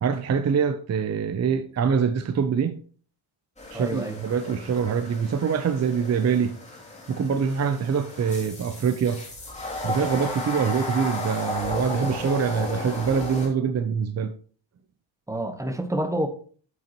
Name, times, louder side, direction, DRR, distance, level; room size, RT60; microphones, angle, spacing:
voice 1, 0.0-2.8 3.7-6.5 7.1-9.2 9.8-14.3, right 6 dB, 35° right, 0.6 m, -24 dB
sound 1, 3.6-13.5, left 2 dB, 15° left, 2.8 m, -34 dB
voice 2, 3.7-4.2 10.6-10.7 15.3-16.3, right 1 dB, 5° right, 1.1 m, -28 dB
9.1 x 7.9 x 3.0 m
cardioid pair, 130°, 48 cm